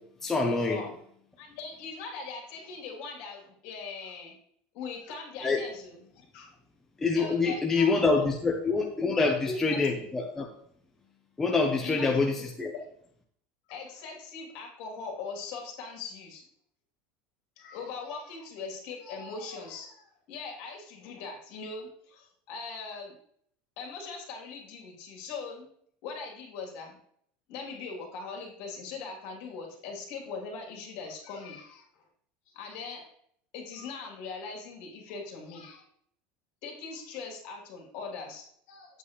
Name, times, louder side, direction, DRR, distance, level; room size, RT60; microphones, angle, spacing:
voice 1, 0.2-0.8 5.4-5.6 7.0-10.5 11.4-12.7, left 4 dB, 10° left, 0 dB, 0.8 m, -26 dB
voice 2, 1.4-4.4 4.7-6.5 7.1-8.3 9.2-10.0 11.8-12.3 12.7-12.8 13.7-16.4 17.6-23.2 23.8-25.7 26.0-27.0 27.5-32.0 32.5-33.0 33.5-35.8 36.6-39.0, left 4 dB, 55° left, 0 dB, 3.1 m, -41 dB
9.4 x 8.3 x 3.2 m, 0.65 s
cardioid pair, 165°, 5 cm